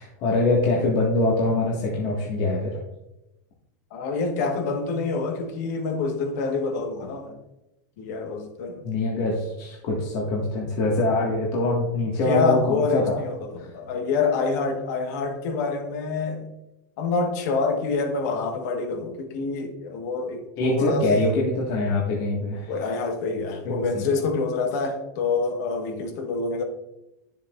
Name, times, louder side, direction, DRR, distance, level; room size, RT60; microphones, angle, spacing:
voice 1, 0.0-2.8 8.8-13.2 13.6-13.7 20.6-22.7 23.6-24.1, left 2 dB, 45° left, -3 dB, 1.7 m, -24 dB
voice 2, 3.9-7.4 8.0-8.8 12.2-16.5 17.0-21.1 22.7-26.6, left 4 dB, 65° left, 5 dB, 1.4 m, -27 dB
10.5 x 7.1 x 2.5 m, 0.93 s
supercardioid pair, 140°, 10 cm